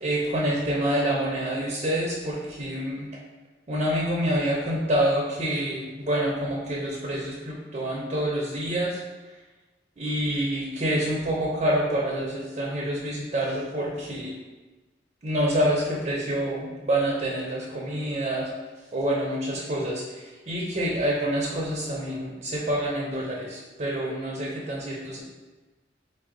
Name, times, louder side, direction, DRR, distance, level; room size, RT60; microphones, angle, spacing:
voice 1, 0.0-3.1 3.7-9.0 10.0-14.3 15.2-18.5 18.9-25.2, right 1 dB, 35° right, -4 dB, 0.6 m, -27 dB
4.5 x 2.1 x 3.7 m, 1.2 s
head